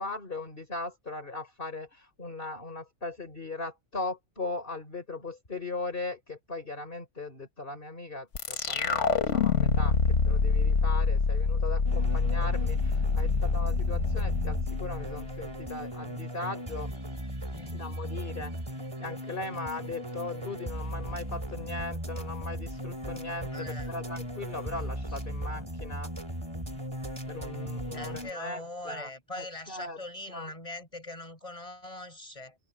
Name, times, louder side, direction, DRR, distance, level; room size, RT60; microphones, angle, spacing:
voice 1, 0.0-16.9 17.7-26.1 27.2-29.1 29.4-30.0 30.3-30.5, left 3 dB, 45° left, 4.0 m, -39 dB
sound 1, 8.3-15.6, left 4 dB, 65° left, 1.8 m, -26 dB
sound 2, 11.8-28.3, equal, 20° right, 4.1 m, -37 dB
voice 2, 17.5-17.8 23.5-23.9 27.9-32.6, left 1 dB, 25° left, 6.9 m, -42 dB
omnidirectional pair, 1.3 m